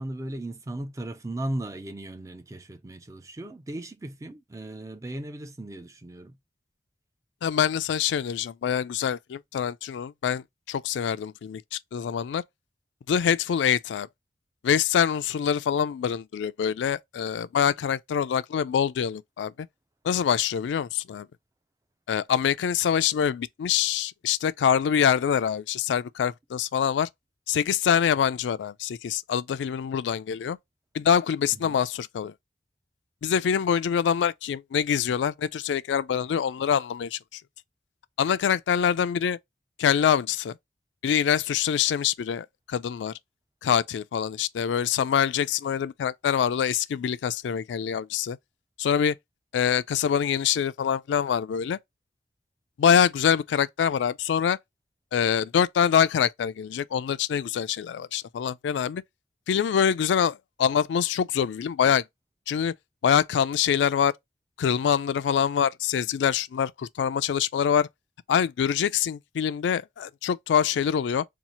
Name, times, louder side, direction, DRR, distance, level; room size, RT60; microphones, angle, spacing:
voice 1, 0.0-6.4 31.5-31.8, right 1 dB, 20° right, 0.3 m, -36 dB
voice 2, 7.4-12.4 13.1-14.1 14.6-19.7 20.0-21.3 22.1-27.1 27.5-30.6 30.9-32.3 33.2-37.4 38.2-39.4 39.8-40.5 41.0-43.1 43.6-48.4 48.8-49.2 49.5-51.8 52.8-54.6 55.1-59.0 59.5-62.0 62.5-62.7 63.0-64.1 64.6-67.9 68.3-71.2, left 8 dB, 90° left, 0.3 m, -25 dB
2.8 x 2.4 x 4.2 m
head